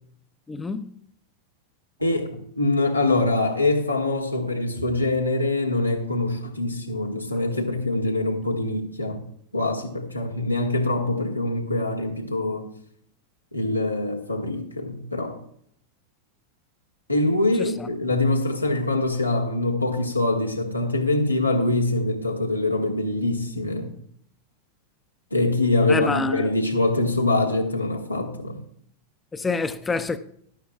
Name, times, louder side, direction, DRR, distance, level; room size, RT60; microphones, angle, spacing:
voice 1, 0.5-0.9 17.6-17.9 25.9-26.5 29.3-30.2, left 4 dB, 15° left, 0.7 m, -27 dB
voice 2, 2.0-9.2 9.5-12.7 13.5-15.4 17.1-23.9 25.3-28.6, left 2 dB, 85° left, 1.6 m, -24 dB
14.0 x 11.5 x 2.3 m
figure-of-eight pair, 90°, 0 cm